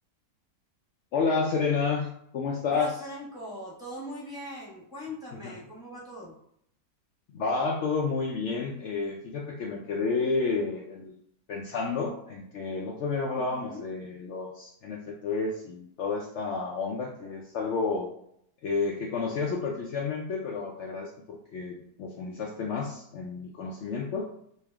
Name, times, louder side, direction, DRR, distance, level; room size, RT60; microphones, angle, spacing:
voice 1, 1.1-2.1 2.3-3.1 5.3-5.5 7.3-11.1 11.5-18.1 18.6-24.3, left 4 dB, 80° left, -1 dB, 0.6 m, -30 dB
voice 2, 2.7-6.3 13.3-13.8, equal, 5° right, -8 dB, 1.2 m, -41 dB
3.3 x 2.7 x 3.4 m, 0.70 s
omnidirectional pair, 1.8 m